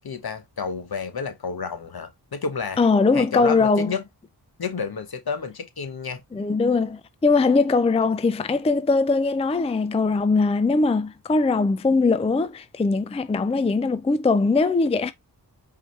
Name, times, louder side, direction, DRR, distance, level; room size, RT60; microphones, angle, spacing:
voice 1, 0.0-2.8 3.1-4.0 4.6-6.2, left 5 dB, 60° left, 1.1 m, -30 dB
voice 2, 2.8-4.0 6.3-15.1, left 3 dB, 15° left, 0.4 m, -21 dB
4.8 x 2.7 x 3.2 m
cardioid pair, 45°, 42 cm